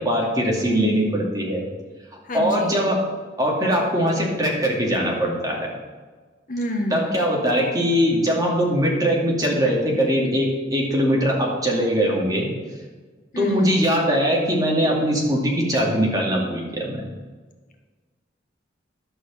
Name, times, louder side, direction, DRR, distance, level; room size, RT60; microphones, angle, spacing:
voice 1, 0.0-1.6 2.3-3.0 3.4-5.7 6.9-12.5 13.4-17.0, equal, 20° right, -2 dB, 2.3 m, -21 dB
voice 2, 2.2-2.8 6.5-7.2 13.3-13.7, equal, 45° left, 3 dB, 1.2 m, -27 dB
11.5 x 6.5 x 7.2 m, 1.4 s
head